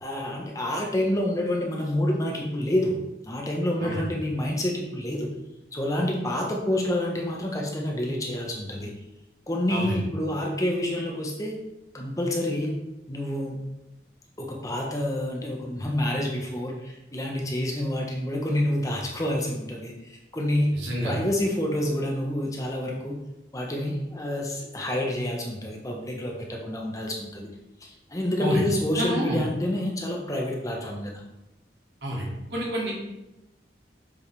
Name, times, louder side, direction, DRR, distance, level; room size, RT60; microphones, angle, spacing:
voice 1, 0.0-3.0 3.3-5.3 5.7-8.9 9.5-11.5 11.9-12.8 13.1-13.6 14.4-20.7 21.0-23.1 23.5-27.5 27.8-31.2, left 1 dB, 20° left, 0 dB, 0.9 m, -28 dB
voice 2, 20.8-21.1 28.4-28.6 28.9-29.4 32.0-32.9, equal, 70° right, -5 dB, 2.4 m, -28 dB
7.3 x 5.0 x 3.3 m, 0.94 s
head